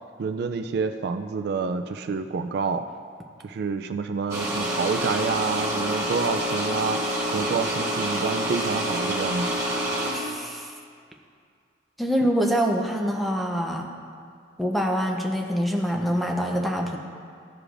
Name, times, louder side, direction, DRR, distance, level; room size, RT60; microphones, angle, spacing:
voice 1, 0.2-2.9 3.4-9.6, right 5 dB, 60° right, 8 dB, 0.3 m, -28 dB
sound 1, 4.3-10.1, right 1 dB, 20° right, 1.6 m, -27 dB
voice 2, 10.1-10.7 12.0-13.9 14.6-17.0, equal, ahead, 1 dB, 0.6 m, -25 dB
14.0 x 4.9 x 2.5 m, 2.2 s
head